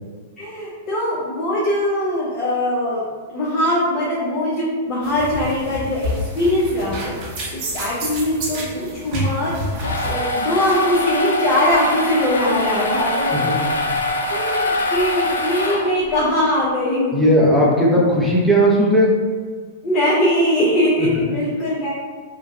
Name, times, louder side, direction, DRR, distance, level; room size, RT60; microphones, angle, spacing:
voice 1, 0.4-3.0 3.3-7.1 7.5-13.4 14.3-17.2 19.8-21.9, left 1 dB, 35° left, -7 dB, 0.7 m, -21 dB
sound 1, 5.0-10.1, equal, 45° right, 0.8 m, -28 dB
sound 2, 9.5-16.2, left 1 dB, 80° left, 0.3 m, -23 dB
voice 2, 17.1-19.1, equal, ahead, -5 dB, 0.7 m, -15 dB
3.0 x 2.2 x 2.6 m, 1.5 s
hypercardioid pair, 110°, 0 cm